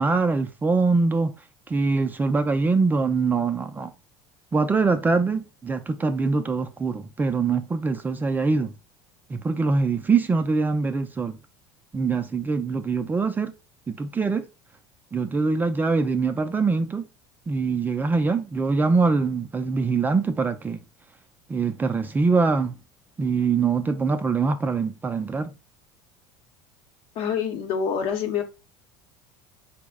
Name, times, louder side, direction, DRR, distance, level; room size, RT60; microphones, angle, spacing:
voice 1, 0.0-1.3 1.7-3.9 4.5-8.7 9.3-11.4 11.9-13.5 13.9-14.5 15.1-17.0 17.5-20.8 21.5-22.8 23.2-25.5, right 4 dB, 15° right, 0.4 m, -23 dB
voice 2, 27.2-28.4, left 7 dB, 60° left, 0.8 m, -26 dB
4.1 x 2.0 x 3.5 m
supercardioid pair, 105°, 11 cm